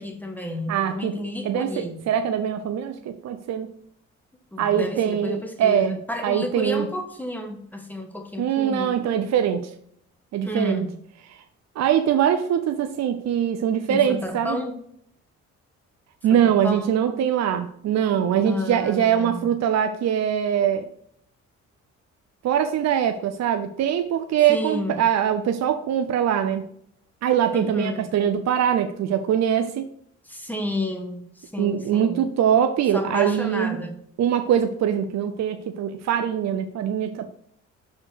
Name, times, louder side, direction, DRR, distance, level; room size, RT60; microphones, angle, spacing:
voice 1, 0.0-2.0 4.5-8.9 10.4-10.9 13.9-14.7 16.3-17.0 18.5-19.4 24.5-25.0 27.5-28.0 30.2-32.3 32.9-34.0, left 1 dB, 5° left, 4 dB, 1.3 m, -31 dB
voice 2, 0.7-1.1 1.4-3.7 4.6-6.9 8.4-9.7 10.3-10.9 11.3-11.4 11.8-14.6 16.2-20.9 22.4-26.7 27.2-29.9 31.6-33.8 34.2-37.3, right 9 dB, 60° right, 8 dB, 0.6 m, -23 dB
6.0 x 4.4 x 6.2 m, 0.68 s
cardioid pair, 90°, 30 cm